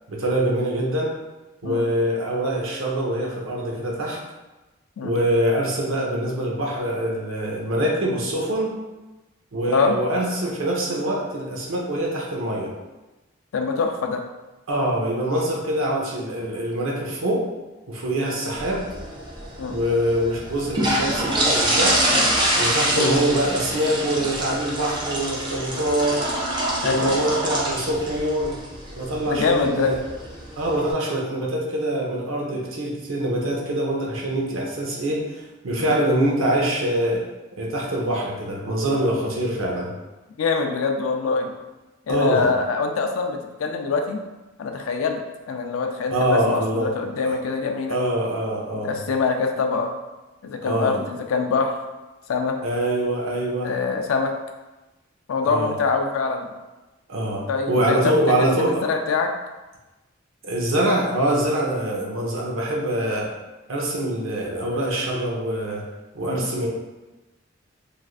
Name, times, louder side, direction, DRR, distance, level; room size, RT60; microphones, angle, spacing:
voice 1, 0.1-1.2 1.6-4.2 5.0-8.8 9.5-12.7 14.7-17.4 17.9-18.8 19.7-22.0 22.6-26.2 26.8-28.6 29.0-30.0 30.6-37.2 37.6-39.9 42.1-42.5 46.1-46.9 47.2-47.3 47.9-49.0 50.6-51.0 52.6-53.7 55.4-55.7 57.1-58.8 60.4-63.3 63.7-65.8 66.1-66.7, right 1 dB, 80° right, -3 dB, 0.7 m, -24 dB
voice 2, 13.5-14.2 19.6-19.8 22.1-22.3 22.9-23.2 26.8-27.2 29.3-29.9 35.8-36.0 40.4-41.5 42.1-44.2 44.6-45.2 45.5-48.0 48.8-49.9 50.4-51.7 52.3-52.6 53.6-54.3 55.3-56.5 57.5-58.1 58.6-59.3 66.2-66.5, left 4 dB, 85° left, 4 dB, 0.4 m, -24 dB
sound 1, 18.5-30.9, right 1 dB, 25° right, 0.5 m, -26 dB
3.3 x 2.4 x 2.4 m, 1.1 s
head